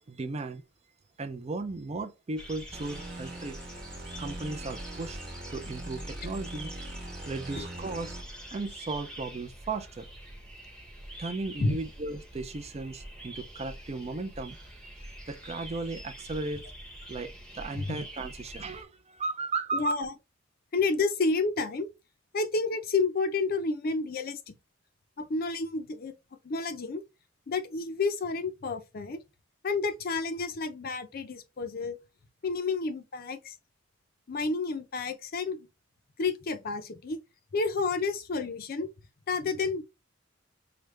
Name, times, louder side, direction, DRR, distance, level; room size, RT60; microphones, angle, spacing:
voice 1, 0.1-0.6 1.2-3.6 4.2-5.2 5.5-6.7 7.2-8.1 8.5-10.1 11.2-14.6 15.3-16.6 17.1-19.9, right 3 dB, 35° right, 0.4 m, -35 dB
sound 1, 2.4-18.8, right 1 dB, 5° left, 0.8 m, -45 dB
sound 2, 2.7-8.5, right 1 dB, 60° right, 1.1 m, -42 dB
voice 2, 17.7-18.0 19.7-20.1 20.7-21.9 22.3-24.6 25.2-26.1 26.4-27.0 27.5-29.2 29.6-32.0 32.4-33.5 34.3-35.7 36.2-37.2 37.5-38.9 39.3-39.8, left 3 dB, 50° left, 0.5 m, -30 dB
4.8 x 2.2 x 3.1 m
head